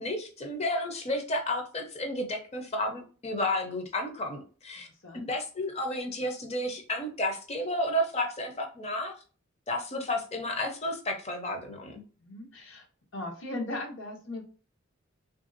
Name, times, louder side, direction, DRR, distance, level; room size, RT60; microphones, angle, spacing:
voice 1, 0.0-4.9 5.3-9.1 9.7-12.0, left 1 dB, 30° left, 4 dB, 0.6 m, -32 dB
voice 2, 12.2-12.9 13.1-14.4, left 2 dB, 70° left, 2 dB, 0.9 m, -37 dB
3.2 x 2.6 x 2.5 m, 0.38 s
head